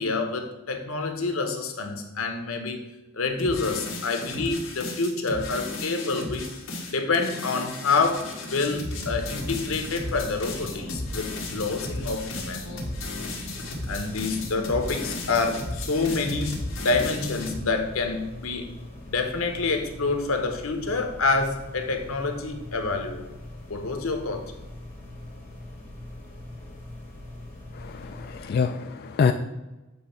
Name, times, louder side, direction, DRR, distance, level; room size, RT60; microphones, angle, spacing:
voice 1, 0.0-2.8 3.1-6.5 6.9-12.7 13.9-16.5 16.8-18.7 19.1-23.2 23.7-24.5, left 3 dB, 85° left, 5 dB, 1.0 m, -27 dB
sound 1, 3.4-17.6, left 2 dB, 65° left, 1.5 m, -34 dB
sound 2, 8.8-28.5, left 1 dB, 10° left, 1.8 m, -42 dB
voice 2, 27.7-29.3, left 6 dB, 50° left, 7 dB, 0.3 m, -26 dB
7.5 x 3.2 x 5.7 m, 1.0 s
head